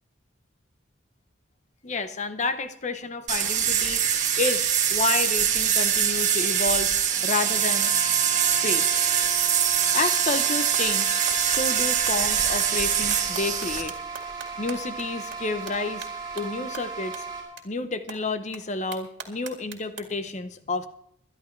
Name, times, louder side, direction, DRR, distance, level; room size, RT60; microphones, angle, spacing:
voice 1, 1.8-4.0 4.4-6.9 7.2-7.9 8.6-8.9 9.9-11.1 11.5-13.9 14.6-16.1 16.3-17.2 17.6-20.9, left 3 dB, 40° left, 11 dB, 0.7 m, -30 dB
sound 1, 3.3-13.8, right 8 dB, 40° right, 1.6 m, -23 dB
sound 2, 7.4-17.4, right 5 dB, 20° right, 4.4 m, -37 dB
sound 3, 9.8-9.9 10.2-15.1 15.3-15.4 15.7-15.8 16.0-16.1 16.4-16.5 16.7-16.8 17.1-17.2 17.6-17.7 18.1-18.2 18.5-18.6 18.9-20.0, right 6 dB, 80° right, 2.0 m, -39 dB
22.5 x 11.0 x 3.2 m, 0.74 s
head